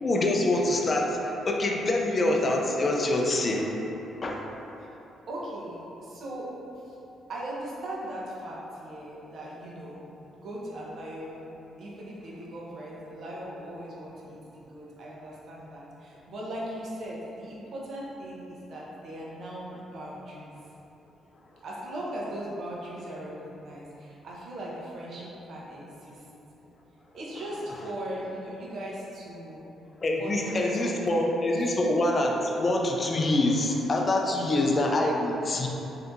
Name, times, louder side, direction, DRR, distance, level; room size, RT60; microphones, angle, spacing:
voice 1, 0.0-3.8 4.2-4.4 27.7-27.8 30.0-35.7, left 1 dB, 35° left, 0 dB, 0.4 m, -25 dB
voice 2, 5.3-6.5 7.3-10.0 10.3-11.5 11.8-20.5 21.6-26.1 27.1-29.6 30.2-31.7, right 1 dB, 60° right, -5 dB, 0.7 m, -39 dB
3.4 x 2.7 x 2.6 m, 3.0 s
cardioid pair, 90°, 0 cm